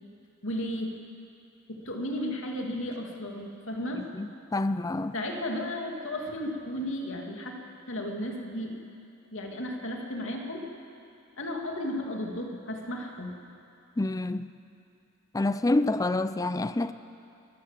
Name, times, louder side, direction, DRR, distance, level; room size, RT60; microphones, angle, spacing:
voice 1, 0.4-1.0 1.7-4.1 5.1-7.6 7.9-8.7 9.3-10.7 11.4-13.4, left 1 dB, 60° left, 2.6 m, -34 dB
voice 2, 4.0-5.1 14.0-14.5 15.3-16.9, left 2 dB, 15° left, 0.4 m, -28 dB
23.5 x 15.0 x 7.5 m
head